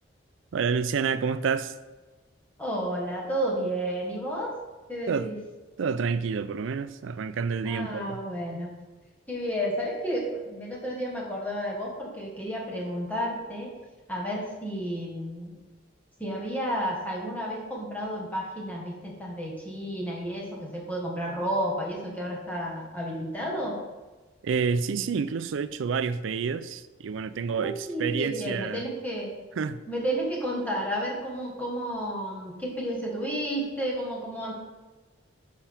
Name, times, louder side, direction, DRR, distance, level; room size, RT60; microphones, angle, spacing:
voice 1, 0.5-1.8 5.1-5.3 5.8-8.2 24.4-28.9 29.6-29.8, right 5 dB, 70° right, 0.4 m, -28 dB
voice 2, 2.6-4.5 4.9-5.4 7.6-8.7 9.3-13.7 14.1-15.6 16.2-23.8 27.6-29.3 29.9-34.5, equal, 10° left, 1.3 m, -31 dB
7.3 x 5.7 x 3.5 m
head